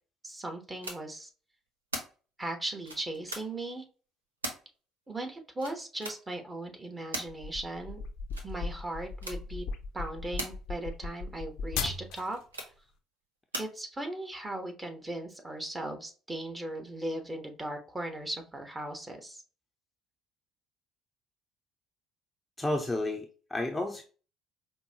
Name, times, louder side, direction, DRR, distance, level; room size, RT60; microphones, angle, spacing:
voice 1, 0.2-1.3 2.4-3.8 5.1-8.0 8.4-9.7 9.9-12.4 13.5-19.4, right 1 dB, 20° right, 4 dB, 1.1 m, -38 dB
sound 1, 0.8-1.0 1.9-2.1 2.8-3.4 4.4-4.6 5.6-6.2 7.1-7.3 8.3-8.5 9.2-9.4 10.4-10.5 11.7-12.0 12.5-12.7 13.5-13.7, right 1 dB, 85° right, 0.6 m, -37 dB
sound 2, 7.3-12.4, left 4 dB, 60° left, 0.5 m, -37 dB
voice 2, 22.6-24.0, left 2 dB, 10° left, 3 dB, 0.6 m, -31 dB
5.2 x 2.2 x 2.8 m, 0.37 s
figure-of-eight pair, 50°, 0 cm